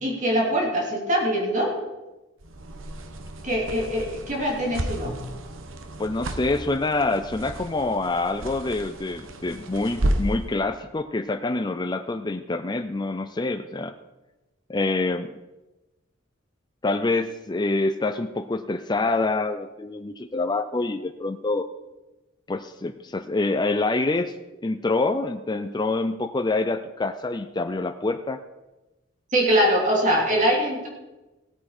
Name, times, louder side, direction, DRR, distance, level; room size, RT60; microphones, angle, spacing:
voice 1, 0.0-1.7 3.4-5.2 29.3-30.9, equal, 40° right, -1 dB, 3.1 m, -23 dB
sound 1, 2.4-10.5, right 1 dB, 80° right, 1.1 m, -32 dB
voice 2, 6.0-13.9 14.7-15.3 16.8-21.7 22.5-24.3 24.6-28.4, left 2 dB, 20° left, 8 dB, 0.5 m, -26 dB
16.5 x 9.1 x 4.4 m, 1.0 s
head